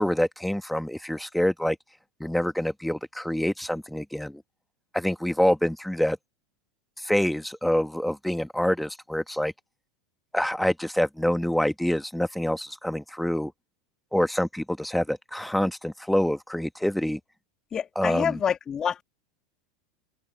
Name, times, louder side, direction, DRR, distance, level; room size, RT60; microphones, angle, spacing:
voice 1, 0.0-1.8 2.2-4.4 4.9-6.2 7.0-9.5 10.3-13.5 14.1-17.2 18.0-18.4, left 1 dB, ahead, 2.3 m, -26 dB
voice 2, 17.7-19.0, left 8 dB, 30° left, 2.7 m, -27 dB
open air
figure-of-eight pair, 85°, 2 cm